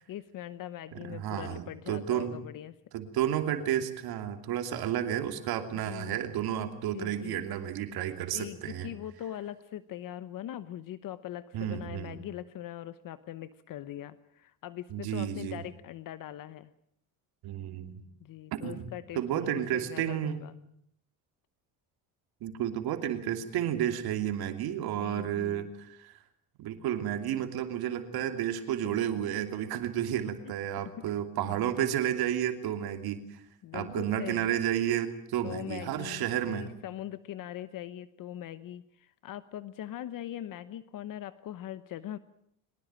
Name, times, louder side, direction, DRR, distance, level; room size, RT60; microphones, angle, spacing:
voice 1, 0.1-2.7 5.8-6.2 6.9-7.5 8.2-16.7 18.2-20.5 24.7-25.7 28.8-29.0 30.4-30.5 31.0-31.1 31.4-31.8 33.6-34.5 35.4-42.2, left 12 dB, 55° left, 14 dB, 1.0 m, -41 dB
voice 2, 1.0-2.4 2.9-8.9 11.5-12.2 14.9-15.6 17.4-18.0 18.6-18.9 19.1-20.4 22.4-26.2 26.6-33.4 33.7-36.7, right 10 dB, 70° right, 7 dB, 2.9 m, -31 dB
23.5 x 19.5 x 8.9 m, 0.70 s
cardioid pair, 125°, 38 cm